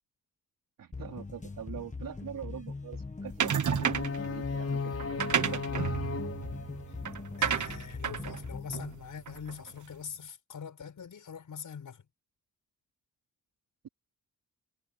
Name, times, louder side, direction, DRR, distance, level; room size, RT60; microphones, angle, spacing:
voice 1, 0.8-5.9, right 9 dB, 90° right, 4.4 m, -44 dB
sound 1, 0.9-9.0, left 3 dB, 20° left, 1.6 m, -41 dB
sound 2, 3.4-4.2 5.0-9.7, right 8 dB, 65° right, 1.4 m, -32 dB
sound 3, 3.8-7.8, left 5 dB, 45° left, 5.5 m, -37 dB
voice 2, 7.4-12.0, left 7 dB, 65° left, 6.8 m, -43 dB
wide cardioid pair, 135°, 33 cm